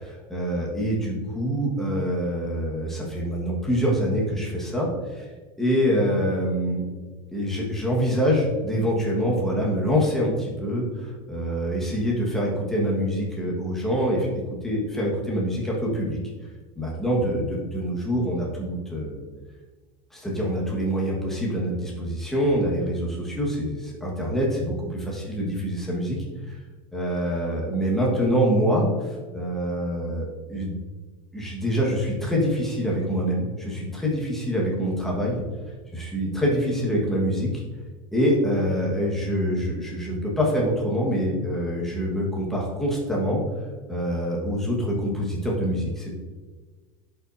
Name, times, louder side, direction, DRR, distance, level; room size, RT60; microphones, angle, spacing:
voice 1, 0.0-5.3 5.6-6.8 7.3-14.3 14.6-16.2 16.8-19.2 20.1-26.2 26.5-26.6 26.9-30.8 31.3-35.4 35.9-37.6 38.1-43.4 43.9-46.1, equal, ahead, -4 dB, 1.4 m, -25 dB
10.5 x 5.7 x 2.7 m, 1.4 s
supercardioid pair, 170°, 19 cm